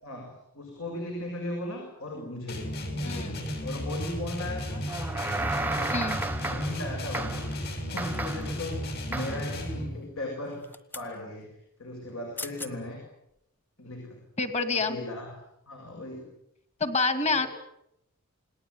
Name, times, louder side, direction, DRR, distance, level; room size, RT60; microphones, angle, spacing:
voice 1, 0.0-4.9 5.6-6.1 6.4-10.6 10.9-13.0 13.8-14.2 14.7-15.3 15.7-16.3 17.2-17.5, left 1 dB, 75° left, 1 dB, 7.6 m, -38 dB
sound 1, 2.5-10.0, equal, 45° left, 7.2 m, -34 dB
voice 2, 3.0-3.4 5.9-6.2 14.4-15.0 16.8-17.5, left 3 dB, 30° left, 9 dB, 2.5 m, -27 dB
sound 2, 4.9-6.9 7.1-7.6 8.0-8.6 9.1-9.5, right 2 dB, 10° right, 1.0 m, -33 dB
sound 3, 8.1-8.7 10.4-11.1 12.1-12.2 12.4-12.7 13.3-13.4, left 2 dB, 10° left, 1.3 m, -42 dB
29.0 x 19.0 x 9.8 m, 0.83 s
head